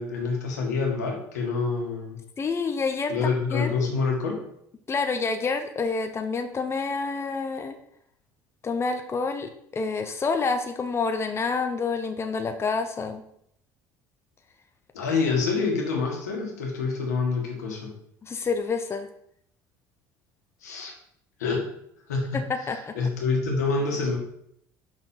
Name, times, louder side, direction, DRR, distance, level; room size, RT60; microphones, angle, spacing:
voice 1, 0.0-2.2 3.1-4.4 14.9-17.9 20.6-20.9 21.4-21.7 22.1-22.4 22.9-24.2, left 4 dB, 90° left, 1 dB, 1.7 m, -27 dB
voice 2, 2.4-3.9 4.9-7.8 8.6-13.2 18.2-19.1 22.7-22.9, left 4 dB, 30° left, 7 dB, 0.8 m, -28 dB
6.1 x 4.2 x 5.6 m, 0.72 s
hypercardioid pair, 70°, 9 cm